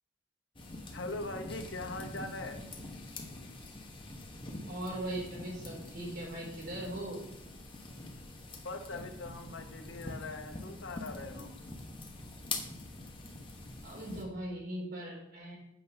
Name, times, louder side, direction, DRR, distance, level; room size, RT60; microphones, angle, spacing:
sound 1, 0.6-14.2, left 2 dB, 25° left, 1.2 m, -45 dB
voice 1, 0.9-2.6 8.6-11.5, left 2 dB, 75° left, 7 dB, 1.0 m, -41 dB
voice 2, 4.7-7.2 13.8-15.6, right 1 dB, 55° right, -3 dB, 4.3 m, -39 dB
8.2 x 5.3 x 6.9 m, 0.79 s
head